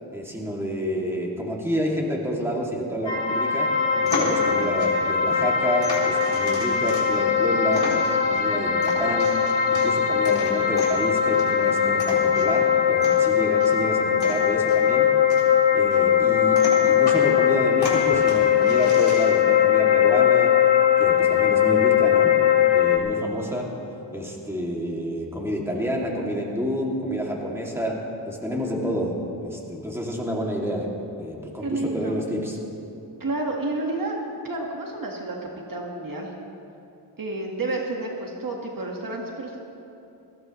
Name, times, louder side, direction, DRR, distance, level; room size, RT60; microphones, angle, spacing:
voice 1, 0.1-3.8 4.0-7.9 8.3-9.4 9.7-15.1 15.7-20.6 21.0-22.4 22.7-23.7 24.1-30.9 31.2-32.6, equal, 5° right, -2 dB, 2.5 m, -29 dB
sound 1, 3.1-23.0, left 8 dB, 70° left, 1.3 m, -20 dB
sound 2, 3.8-19.5, left 2 dB, 85° left, 3.9 m, -36 dB
voice 2, 31.6-32.2 33.2-34.2 34.4-35.4 35.7-36.3 37.2-39.6, right 2 dB, 50° right, 0 dB, 1.7 m, -30 dB
21.0 x 15.5 x 3.1 m, 2.8 s
wide cardioid pair, 85°, 43 cm